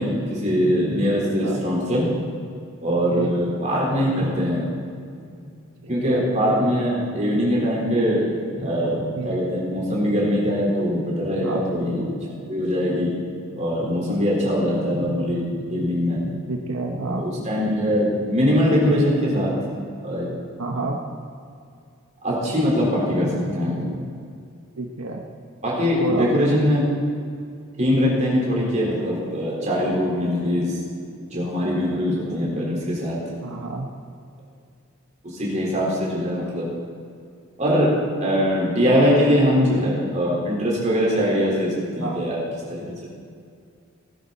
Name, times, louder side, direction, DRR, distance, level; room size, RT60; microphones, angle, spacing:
voice 1, 0.0-2.0 2.8-4.6 5.9-8.2 8.6-12.0 12.5-13.1 13.6-16.2 17.1-19.5 20.0-20.3 22.2-23.9 25.6-26.8 27.8-30.7 31.3-33.2 35.3-36.7 37.6-37.9 38.2-42.4 42.7-43.1, equal, 35° right, -5 dB, 3.9 m, -22 dB
voice 2, 5.8-6.2 9.1-9.4 11.4-11.6 16.5-17.3 20.6-21.0 24.8-25.2 26.0-26.3 33.4-33.9 42.0-42.2, right 3 dB, 80° right, 1 dB, 1.0 m, -29 dB
18.0 x 9.9 x 4.1 m, 2.3 s
head